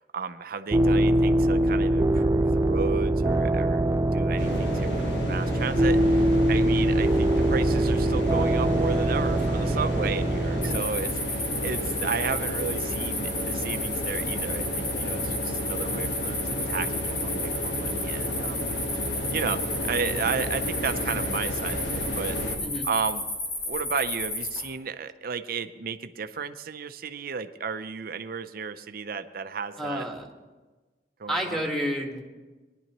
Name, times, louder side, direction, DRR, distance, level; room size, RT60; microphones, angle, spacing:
voice 1, 0.1-11.1 11.6-18.6 19.3-22.4 22.8-23.3 23.6-30.0 31.2-31.6, right 5 dB, 55° right, 10 dB, 0.6 m, -33 dB
sound 1, 0.7-10.8, right 1 dB, 20° right, 0.3 m, -23 dB
sound 2, 4.4-22.6, equal, 80° left, 1.4 m, -32 dB
sound 3, 10.6-24.6, left 2 dB, 60° left, 3.9 m, -32 dB
voice 2, 29.8-30.3 31.3-32.2, equal, ahead, 0 dB, 1.6 m, -30 dB
19.0 x 11.0 x 3.0 m, 1.2 s
head